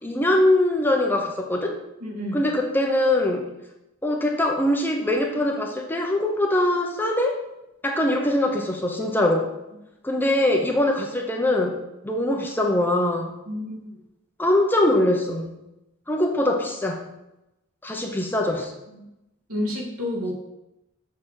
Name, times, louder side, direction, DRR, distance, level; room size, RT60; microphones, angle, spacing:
voice 1, 0.0-1.8 2.3-3.5 4.0-7.4 7.8-9.5 10.0-13.3 14.4-15.5 16.1-17.0 17.8-18.7, left 1 dB, 10° left, 1 dB, 0.9 m, -22 dB
voice 2, 2.0-2.5 13.5-14.0 18.9-19.0 19.5-20.3, left 1 dB, 75° right, -1 dB, 2.4 m, -30 dB
6.7 x 6.6 x 5.7 m, 0.92 s
head